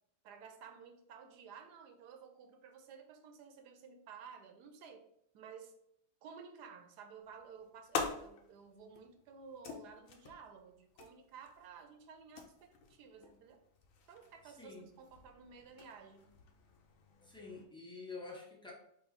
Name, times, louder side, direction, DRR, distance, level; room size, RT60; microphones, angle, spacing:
voice 1, 0.2-5.0 5.3-5.7 6.2-13.6 14.1-16.3, right 6 dB, 80° right, 6 dB, 1.2 m, -54 dB
sound 1, 7.2-17.6, left 5 dB, 65° left, 0.9 m, -47 dB
voice 2, 14.4-14.9 17.2-18.7, left 4 dB, 5° left, -3 dB, 0.4 m, -48 dB
4.6 x 2.8 x 3.9 m, 0.72 s
omnidirectional pair, 1.8 m